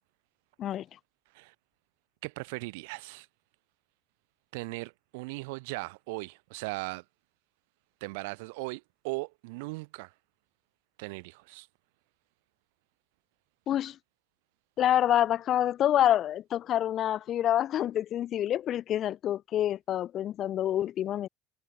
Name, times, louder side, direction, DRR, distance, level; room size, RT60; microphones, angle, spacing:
voice 1, 2.2-3.3 4.5-7.0 8.0-10.1 11.0-11.7, right 26 dB, 85° right, 5.0 m, -38 dB
voice 2, 14.8-21.3, left 11 dB, 40° left, 2.4 m, -27 dB
cardioid pair, 150°, 0 cm